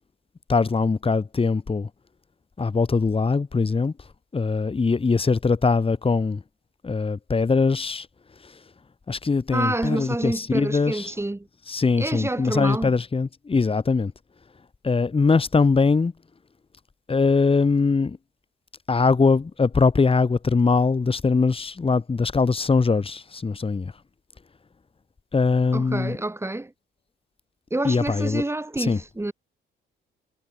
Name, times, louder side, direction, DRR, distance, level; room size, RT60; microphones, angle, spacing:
voice 1, 0.5-1.9 2.6-3.9 4.3-6.4 6.8-8.1 8.4-8.5 9.1-11.1 11.7-14.1 14.8-16.1 17.1-18.2 18.9-23.9 25.3-26.2 27.8-28.4 28.8-29.0, left 4 dB, 30° left, 2.7 m, -22 dB
voice 2, 9.5-11.5 12.0-12.9 25.7-26.7 27.7-29.3, right 2 dB, 15° right, 7.4 m, -28 dB
cardioid pair, 90°, 20 cm